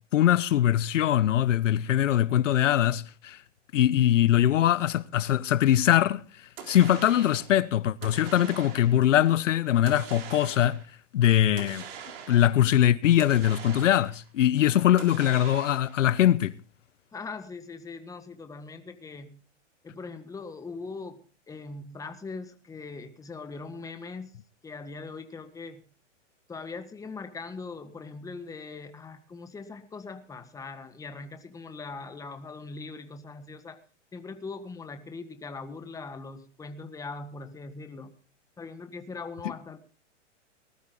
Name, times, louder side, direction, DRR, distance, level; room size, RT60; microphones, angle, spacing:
voice 1, 0.1-3.4 3.7-6.2 6.7-10.8 11.1-11.8 12.3-16.6, left 11 dB, 80° left, 0.9 m, -22 dB
sound 1, 6.6-7.5 8.0-9.1 9.9-10.9 11.6-12.6 13.2-14.3 15.0-16.1, right 8 dB, 50° right, 3.7 m, -43 dB
voice 2, 17.1-19.4 19.8-21.2 21.5-24.4 24.6-25.8 26.5-33.8 34.1-38.1 38.6-39.8, left 4 dB, 10° left, 1.5 m, -41 dB
19.5 x 13.0 x 3.9 m
hypercardioid pair, 140°, 37 cm